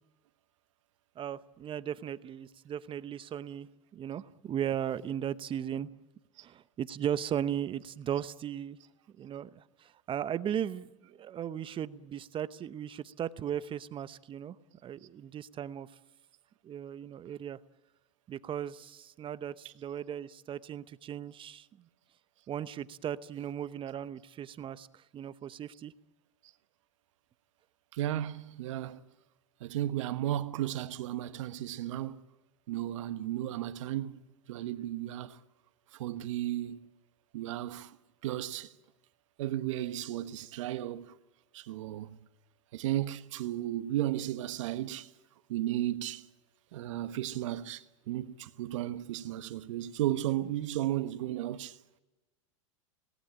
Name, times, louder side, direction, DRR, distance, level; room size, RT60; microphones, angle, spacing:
voice 1, 1.2-5.9 6.4-8.8 9.2-14.6 14.8-15.9 16.6-17.6 18.3-21.7 22.5-25.9, right 9 dB, 30° right, 0.9 m, -37 dB
voice 2, 27.9-29.0 29.6-32.2 32.7-34.2 34.5-35.4 35.9-36.8 37.3-38.0 38.2-38.7 39.4-41.1 41.5-42.2 42.7-45.1 45.5-46.3 46.7-51.8, right 13 dB, 70° right, 1.2 m, -34 dB
26.5 x 18.5 x 8.9 m
hypercardioid pair, 95°, 16 cm